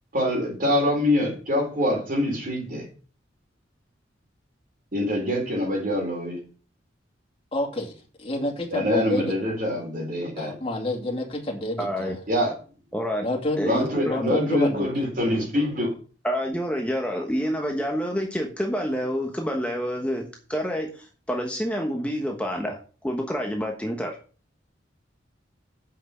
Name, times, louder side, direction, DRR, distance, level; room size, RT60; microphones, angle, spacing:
voice 1, 0.1-2.9 4.9-6.4 8.7-10.5 12.3-12.5 13.6-15.9, left 1 dB, 50° right, 4.0 m, -25 dB
voice 2, 7.5-9.4 10.3-12.1 13.2-14.9, left 1 dB, 30° left, 2.4 m, -28 dB
voice 3, 11.8-12.2 12.9-13.3 13.6-14.3 16.2-24.2, equal, 5° left, 1.2 m, -28 dB
7.9 x 6.0 x 7.0 m
head